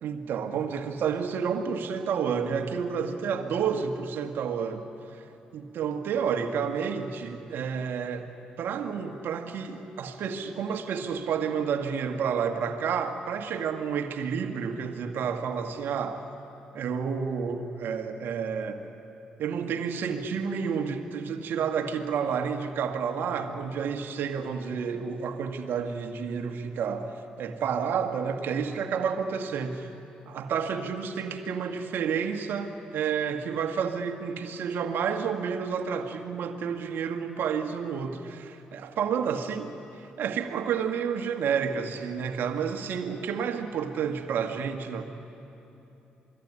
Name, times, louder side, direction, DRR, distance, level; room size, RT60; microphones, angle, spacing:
voice 1, 0.0-4.9 5.1-5.2 5.5-16.2 16.7-18.8 19.4-29.9 30.3-45.0, right 6 dB, 65° right, 6 dB, 1.8 m, -30 dB
27.0 x 21.0 x 9.8 m, 3.0 s
hypercardioid pair, 45°, 4 cm